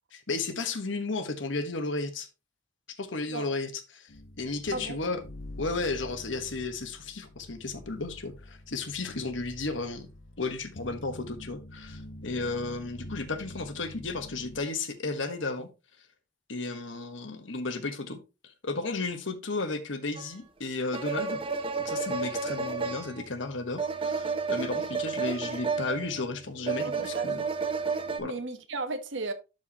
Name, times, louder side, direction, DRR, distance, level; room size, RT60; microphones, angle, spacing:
voice 1, 0.1-2.3 3.0-4.1 4.4-5.2 5.6-10.1 10.4-15.7 16.5-21.4 21.8-27.4 28.2-28.4, left 3 dB, 70° left, 1.3 m, -33 dB
sound 1, 4.1-14.6, left 1 dB, 90° left, 1.0 m, -46 dB
sound 2, 20.2-20.3 20.9-28.2, right 4 dB, 25° right, 0.7 m, -31 dB
voice 2, 26.8-27.3 28.2-29.3, right 3 dB, 65° right, 1.1 m, -35 dB
11.5 x 4.8 x 2.9 m
head